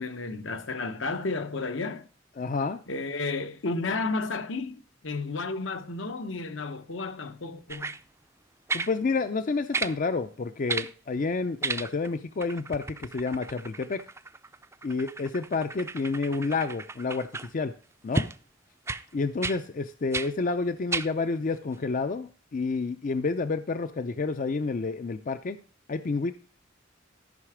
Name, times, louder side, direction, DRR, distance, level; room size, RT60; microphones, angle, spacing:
voice 1, 0.0-2.1 2.9-8.0, left 3 dB, 70° left, 0.9 m, -32 dB
voice 2, 2.4-2.8 8.7-14.0 14.8-17.7 18.0-18.2 19.1-25.6 25.9-26.3, left 4 dB, 45° left, 0.5 m, -29 dB
sound 1, 7.7-8.0 8.7-9.0 9.7-10.0 10.7-10.9 11.6-12.1 12.4-17.5 18.1-18.4 18.9-19.0 19.4-19.6 20.1-20.3 20.9-21.1 21.7-21.8, right 3 dB, 15° right, 0.4 m, -33 dB
13.0 x 5.7 x 4.9 m
head